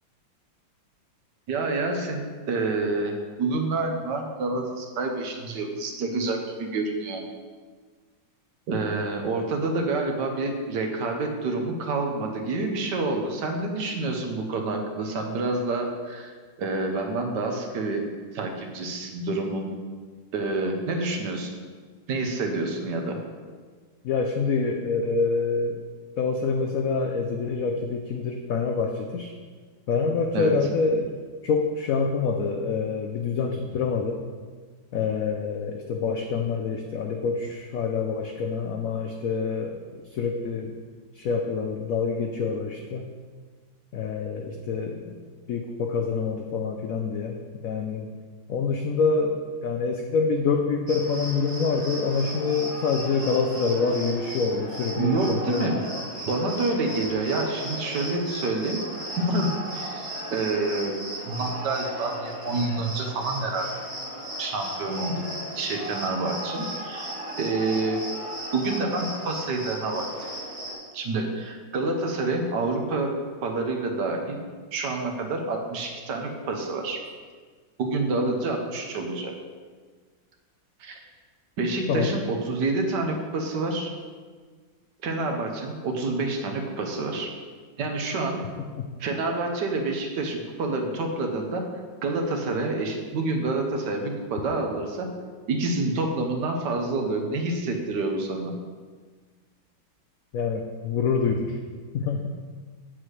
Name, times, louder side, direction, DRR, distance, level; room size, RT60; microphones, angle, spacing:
voice 1, 1.5-2.2 2.5-7.2 8.7-16.3 16.6-18.0 18.3-19.7 20.3-21.5 22.1-23.2 30.3-30.5 55.0-55.8 56.3-58.8 59.2-61.0 61.3-63.7 64.4-67.1 67.4-68.0 68.5-70.1 70.9-73.1 73.4-74.4 74.7-77.1 77.8-79.3 80.8-81.0 81.6-83.9 85.0-87.3 87.8-88.4 89.0-91.6 92.0-95.1 95.5-98.5, right 3 dB, 65° right, 3 dB, 1.4 m, -28 dB
voice 2, 24.0-25.8 26.2-29.3 29.9-31.1 31.4-34.2 34.9-40.7 41.1-43.1 43.9-45.2 45.5-48.1 48.5-55.8 81.9-82.2 100.3-101.6 101.9-102.3, left 4 dB, 90° left, 3 dB, 0.7 m, -26 dB
Cricket, 50.9-70.7, right 1 dB, 30° right, 2.1 m, -35 dB
7.9 x 7.5 x 3.2 m, 1.5 s
omnidirectional pair, 2.1 m